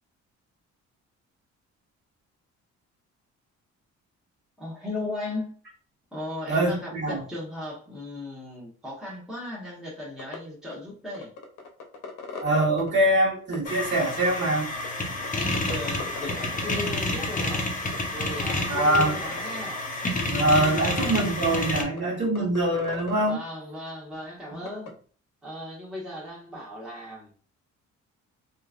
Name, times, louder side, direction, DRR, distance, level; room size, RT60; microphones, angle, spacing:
voice 1, 4.6-5.6 6.1-11.3 15.3-17.7 18.1-19.8 20.6-21.2 23.3-24.9 25.4-27.3, left 1 dB, ahead, -5 dB, 1.1 m, -37 dB
voice 2, 6.5-7.2 12.4-14.6 18.7-19.2 20.3-23.4, right 1 dB, 35° right, -4 dB, 1.4 m, -23 dB
sound 1, 10.2-10.4 10.7-10.8 11.1-12.9 13.5-13.7 14.4-14.9 15.2-15.3 15.5-16.8 17.1-17.2 17.4-17.6 17.9-18.0 18.3-19.6 20.4-20.5 21.0-21.1 21.5-21.6 22.0-22.1 22.4-23.3 24.7-24.9, left 5 dB, 80° left, 0.8 m, -38 dB
sound 2, 13.7-21.8, left 2 dB, 25° left, 0.7 m, -29 dB
3.0 x 2.5 x 2.4 m, 0.42 s
cardioid pair, 90°, 30 cm